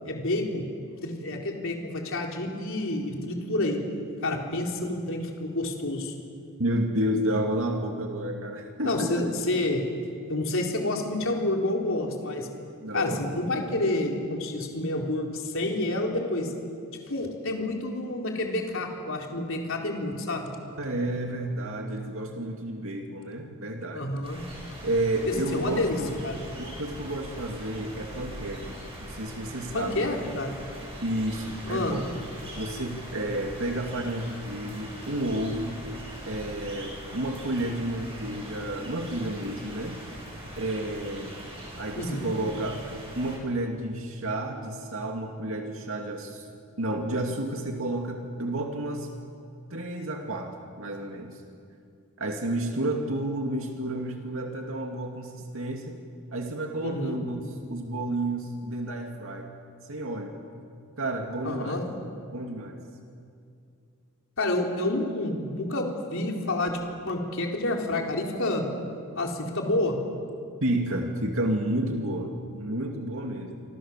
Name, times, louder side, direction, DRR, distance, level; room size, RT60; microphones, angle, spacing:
voice 1, 0.0-0.6 1.0-3.8 4.2-6.1 8.8-9.8 10.3-12.5 12.9-16.5 17.1-20.5 23.9-24.4 25.3-26.4 29.7-30.5 31.7-32.0 41.9-42.3 56.8-57.2 61.4-61.8 64.4-66.8 67.1-68.7 69.2-70.0, left 2 dB, 65° left, 1 dB, 4.1 m, -29 dB
voice 2, 6.6-9.1 12.8-13.5 20.8-24.1 24.8-26.2 26.6-30.1 31.0-32.0 32.6-35.8 36.3-40.0 40.6-41.3 41.8-42.8 43.2-46.4 46.8-49.1 49.7-51.4 52.2-56.0 56.3-59.5 59.8-60.4 61.0-61.8 62.3-62.8 70.6-73.6, right 1 dB, 65° right, 2 dB, 2.5 m, -31 dB
sound 1, 24.2-43.4, equal, 25° right, 8.0 m, -42 dB
27.5 x 26.0 x 7.5 m, 2.5 s
head